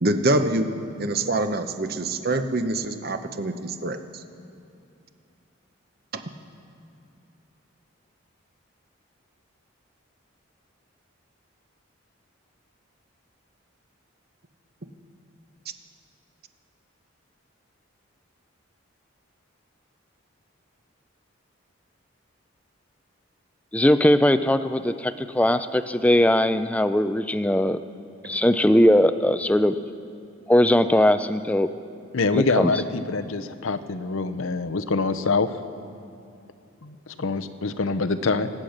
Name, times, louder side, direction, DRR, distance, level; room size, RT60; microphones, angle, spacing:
voice 1, 0.0-4.0, right 2 dB, 45° right, 8 dB, 0.8 m, -25 dB
voice 2, 23.7-27.8 28.3-29.7 30.5-31.7 32.3-32.7, left 1 dB, 5° left, 11 dB, 0.4 m, -20 dB
voice 3, 32.1-35.6 36.8-38.5, left 3 dB, 75° left, 11 dB, 0.7 m, -25 dB
24.5 x 8.8 x 6.5 m, 2.7 s
head